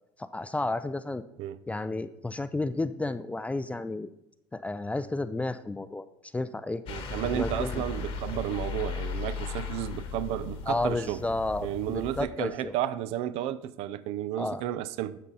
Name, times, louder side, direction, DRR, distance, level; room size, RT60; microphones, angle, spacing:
voice 1, 0.2-1.2 1.7-4.1 4.5-6.0 6.3-6.8 7.3-7.8 10.7-12.7 14.4-14.6, left 2 dB, 10° left, 0.4 m, -32 dB
sound 1, 6.9-12.2, left 5 dB, 60° left, 1.3 m, -36 dB
voice 2, 6.9-11.2 11.6-15.2, right 12 dB, 70° right, 0.5 m, -32 dB
12.5 x 4.1 x 3.9 m
supercardioid pair, 80°, 11 cm